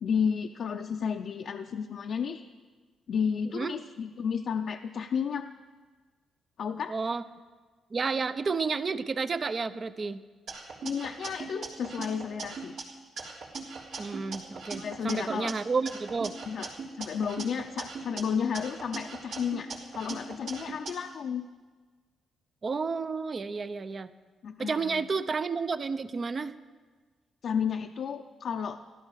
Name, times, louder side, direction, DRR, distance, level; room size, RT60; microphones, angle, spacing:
voice 1, 0.0-2.4 3.1-5.5 6.6-6.9 10.8-12.9 14.7-15.5 16.5-16.7 17.0-21.4 24.4-25.0 27.4-28.8, left 7 dB, 65° left, 4 dB, 0.6 m, -32 dB
voice 2, 6.9-7.2 7.9-10.2 14.0-16.3 22.6-24.1 24.6-26.5, right 4 dB, 40° right, 12 dB, 0.7 m, -31 dB
sound 1, 10.5-12.8 13.2-15.5 15.9-18.2 18.5-20.9, right 4 dB, 80° right, 3.4 m, -40 dB
15.0 x 12.5 x 6.5 m, 1.4 s
cardioid pair, 75°, 0 cm